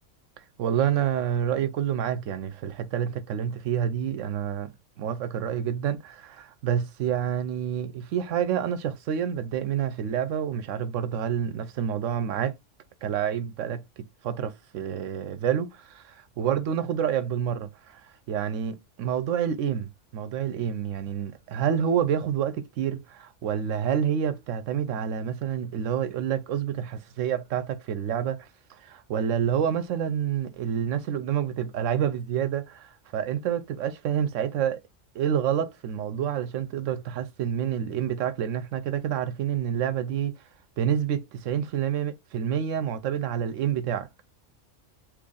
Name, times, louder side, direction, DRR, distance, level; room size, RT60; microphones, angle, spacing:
voice 1, 0.6-4.7 5.0-12.5 13.0-34.8 35.1-40.4 40.8-44.1, right 9 dB, 90° right, 1.0 m, -28 dB
2.9 x 2.5 x 3.8 m
omnidirectional pair, 1.3 m